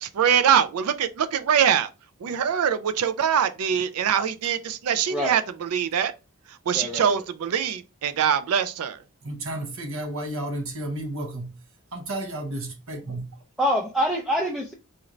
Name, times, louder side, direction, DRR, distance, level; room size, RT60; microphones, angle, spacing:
voice 1, 0.0-1.9 2.2-6.1 6.7-9.0, right 8 dB, 80° right, 0.4 m, -23 dB
voice 2, 6.7-7.2 13.6-14.7, equal, ahead, 0.4 m, -25 dB
voice 3, 9.2-11.6 11.9-13.3, right 1 dB, 65° right, 1.0 m, -32 dB
4.2 x 2.5 x 3.0 m
head